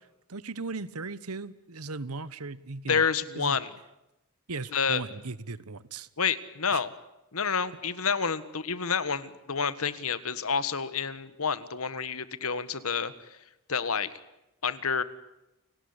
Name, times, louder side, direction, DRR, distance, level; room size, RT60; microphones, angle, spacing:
voice 1, 0.3-3.0 3.4-3.6 4.5-6.1 6.7-6.8, right 3 dB, 85° right, 17 dB, 1.2 m, -37 dB
voice 2, 2.9-3.7 4.7-5.0 6.2-6.9 7.3-13.1 13.7-14.1 14.6-15.0, left 6 dB, 75° left, 15 dB, 1.6 m, -29 dB
29.0 x 18.5 x 9.8 m, 0.91 s
head